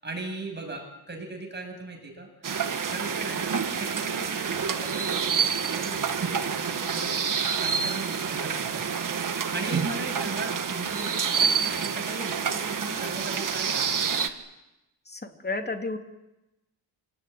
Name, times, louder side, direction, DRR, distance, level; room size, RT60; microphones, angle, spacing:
voice 1, 0.0-2.3 2.9-9.0 9.5-14.1, right 2 dB, 25° right, 3 dB, 7.5 m, -38 dB
sound 1, 2.4-14.3, right 6 dB, 50° right, 1.9 m, -28 dB
voice 2, 9.5-9.8 15.1-16.0, left 3 dB, 25° left, 4 dB, 2.9 m, -33 dB
28.0 x 17.5 x 9.5 m, 0.97 s
wide cardioid pair, 120°, 41 cm